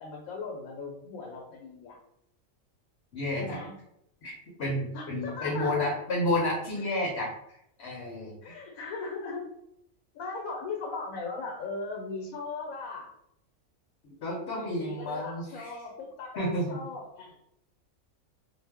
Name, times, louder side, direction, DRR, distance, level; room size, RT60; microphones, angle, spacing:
voice 1, 0.0-2.0 3.4-3.7 4.9-5.7 6.8-6.9 8.4-9.4 10.1-13.1 14.5-17.4, left 3 dB, 85° left, -1 dB, 1.1 m, -38 dB
voice 2, 3.1-3.6 4.2-4.3 4.6-7.3 7.8-8.6 14.2-15.7 16.4-16.7, left 1 dB, 60° left, -2 dB, 0.8 m, -31 dB
2.5 x 2.0 x 3.4 m, 0.77 s
omnidirectional pair, 1.5 m